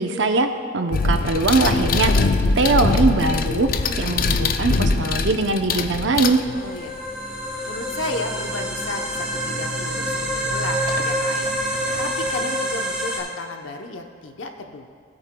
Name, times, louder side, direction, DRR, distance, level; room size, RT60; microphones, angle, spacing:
voice 1, 0.0-2.1 2.6-3.7 4.0-6.4, right 3 dB, 65° right, 6 dB, 0.7 m, -21 dB
sound 1, 0.9-6.9 9.4-9.5 10.9-11.1 11.5-12.4, left 3 dB, 45° left, 0.4 m, -22 dB
sound 2, 6.4-13.2, equal, 5° right, 1.9 m, -26 dB
voice 2, 6.5-7.0 7.6-11.5 12.0-14.9, left 2 dB, 75° left, 4 dB, 0.9 m, -33 dB
16.5 x 8.9 x 2.3 m, 2.2 s
head